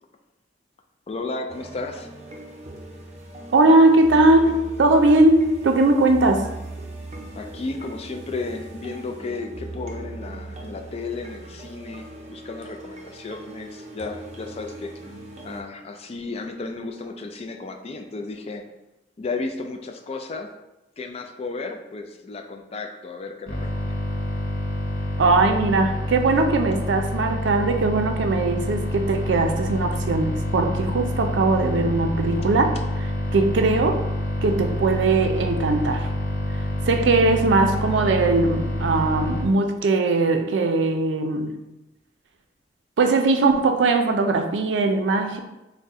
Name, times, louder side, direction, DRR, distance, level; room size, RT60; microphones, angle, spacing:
voice 1, 1.1-2.1 7.3-15.1 15.4-18.6 19.2-20.5 21.0-24.0, left 3 dB, 35° left, 5 dB, 0.4 m, -33 dB
sound 1, 1.5-15.6, right 2 dB, 40° right, 0.5 m, -39 dB
voice 2, 3.5-6.5 25.2-32.8 33.3-34.0 34.4-36.1 36.9-41.6 43.0-45.4, right 2 dB, 90° right, 5 dB, 0.4 m, -20 dB
sound 2, 23.5-39.4, left 1 dB, 55° left, 0.8 m, -27 dB
4.1 x 2.1 x 3.5 m, 0.96 s
head